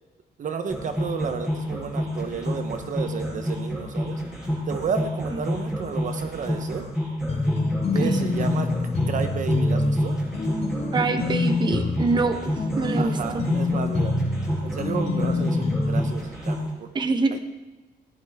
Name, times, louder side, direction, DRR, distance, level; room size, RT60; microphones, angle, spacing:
voice 1, 0.4-4.2 4.7-6.8 7.9-8.7 9.1-10.1 13.0-14.2 14.6-16.9 17.3-17.4, right 6 dB, 50° right, 7 dB, 1.0 m, -32 dB
sound 1, 0.7-16.7, equal, 5° right, 6.1 m, -29 dB
sound 2, 7.3-16.2, left 2 dB, 40° left, 2.7 m, -26 dB
voice 2, 10.9-13.4 16.9-17.4, right 3 dB, 25° right, 7 dB, 1.1 m, -25 dB
19.5 x 17.0 x 3.6 m, 1.1 s
wide cardioid pair, 180°, 17 cm